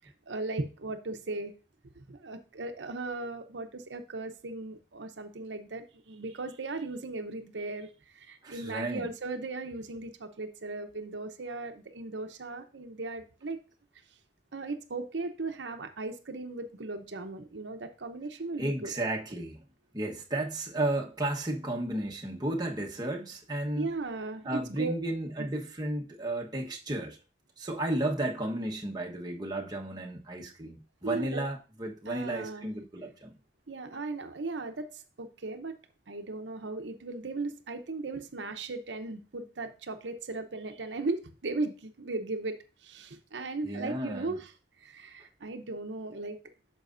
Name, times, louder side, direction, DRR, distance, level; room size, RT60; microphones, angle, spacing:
voice 1, 0.3-1.5 2.0-13.6 14.5-18.9 23.8-24.9 25.4-25.5 31.0-31.4 32.1-32.7 33.7-35.7 36.1-42.6 42.8-44.5 44.8-46.4, right 3 dB, 90° right, 0.8 m, -37 dB
voice 2, 8.4-9.1 18.6-19.6 19.9-23.9 24.4-27.2 27.6-33.3 43.6-44.3, right 1 dB, 25° right, 1.2 m, -33 dB
9.1 x 6.3 x 2.6 m
head